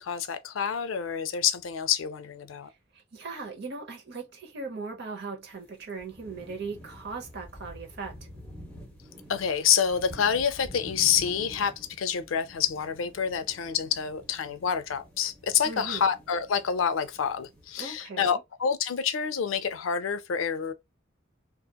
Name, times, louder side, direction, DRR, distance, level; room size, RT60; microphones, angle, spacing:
voice 1, 0.0-2.7 9.3-20.7, left 7 dB, 85° left, 0.4 m, -27 dB
voice 2, 2.9-8.2 15.6-16.0 17.8-18.4, right 4 dB, 55° right, 0.8 m, -38 dB
sound 1, 5.6-5.7 5.9-18.0, equal, 5° left, 1.1 m, -48 dB
2.8 x 2.4 x 2.2 m
head